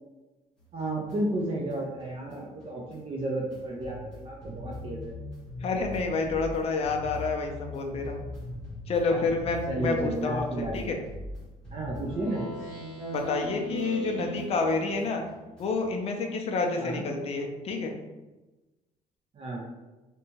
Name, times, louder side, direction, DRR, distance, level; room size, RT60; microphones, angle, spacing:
sound 1, 0.6-12.9 13.1-15.9, left 2 dB, 5° left, 0.9 m, -43 dB
voice 1, 0.7-5.1 9.1-9.2 9.7-10.9 11.7-12.5 16.7-17.0 19.3-19.6, right 1 dB, 35° right, -2 dB, 0.4 m, -32 dB
voice 2, 5.6-8.2 8.9-11.0 13.1-15.2 15.6-18.0, left 3 dB, 40° left, 3 dB, 0.4 m, -29 dB
Speech synthesizer, 12.0-15.1, right 1 dB, 10° right, 1.5 m, -37 dB
2.7 x 2.2 x 2.8 m, 1.1 s
cardioid pair, 145°, 15 cm